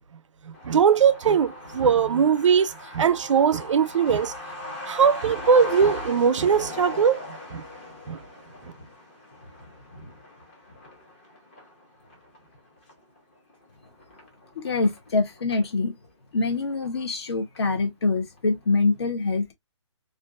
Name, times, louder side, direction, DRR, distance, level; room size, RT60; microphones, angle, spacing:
Truck, 0.5-15.7 16.0-16.1 16.4-17.3 17.6-17.7 18.0-18.4, left 2 dB, 20° left, 0.6 m, -40 dB
voice 1, 0.5-4.3 4.9-7.2 7.5-7.6 8.1-8.2, right 6 dB, 85° right, 0.4 m, -20 dB
voice 2, 14.5-15.9 16.3-19.5, left 3 dB, 60° left, 0.8 m, -25 dB
2.5 x 2.4 x 2.2 m
hypercardioid pair, 175°, 15 cm